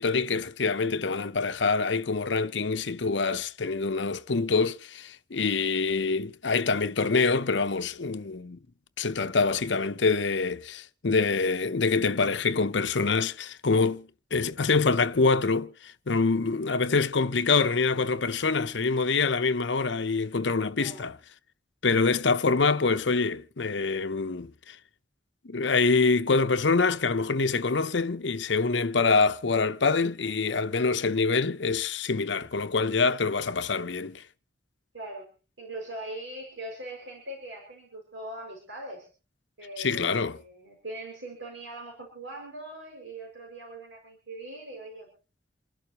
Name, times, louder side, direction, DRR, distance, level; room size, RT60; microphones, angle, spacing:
voice 1, 0.0-8.6 9.0-21.2 21.8-24.8 25.4-34.2 39.8-40.4, left 4 dB, 75° left, 0.8 m, -25 dB
voice 2, 20.7-21.1 34.9-35.3 35.6-39.1 39.6-45.1, right 1 dB, 90° right, 5.9 m, -41 dB
28.5 x 11.5 x 3.0 m
head